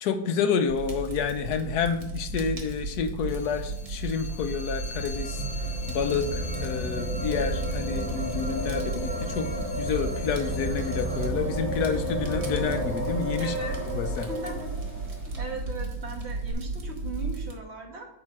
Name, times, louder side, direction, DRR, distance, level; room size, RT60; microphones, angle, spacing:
voice 1, 0.0-5.4 5.9-9.5 9.8-13.5 13.9-14.3, left 6 dB, 90° left, 9 dB, 1.3 m, -29 dB
Fire, 0.7-17.5, right 3 dB, 90° right, 1.9 m, -34 dB
sound 1, 3.3-11.3, left 3 dB, 40° left, 0.5 m, -42 dB
sound 2, 4.4-15.3 16.5-16.6, equal, 10° left, 2.4 m, -33 dB
voice 2, 13.4-13.7 14.3-14.7 15.2-18.1, right 3 dB, 45° right, 1 dB, 1.5 m, -37 dB
8.8 x 3.9 x 5.9 m, 0.84 s
omnidirectional pair, 1.6 m